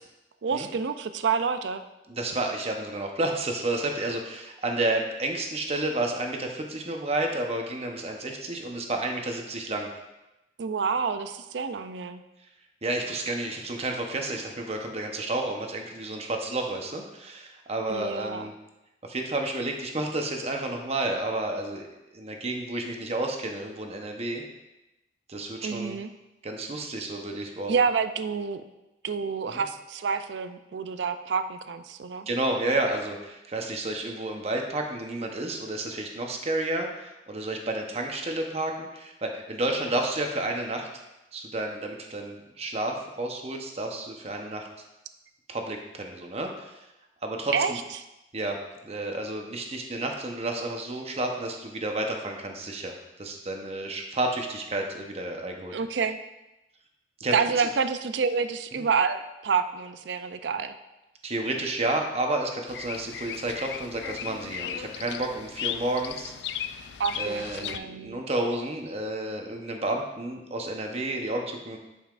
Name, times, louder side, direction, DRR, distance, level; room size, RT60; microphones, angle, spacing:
voice 1, 0.4-1.8 10.6-12.2 17.9-18.5 25.6-26.1 27.7-28.6 29.0-32.3 47.5-47.7 55.7-56.2 57.3-60.8 67.0-68.2, right 5 dB, 80° right, 10 dB, 0.5 m, -28 dB
voice 2, 2.1-9.9 12.8-18.5 19.0-24.4 25.3-26.0 26.4-27.7 29.4-29.6 32.3-40.9 41.3-44.7 45.5-46.7 47.2-47.8 48.3-52.9 53.2-55.7 57.2-57.7 58.7-58.8 61.2-66.8 67.2-71.8, right 2 dB, 35° right, 2 dB, 0.9 m, -31 dB
Bird vocalization bird call bird song, 62.7-67.8, left 9 dB, 65° left, 0.3 m, -36 dB
10.0 x 5.6 x 2.5 m, 0.98 s
head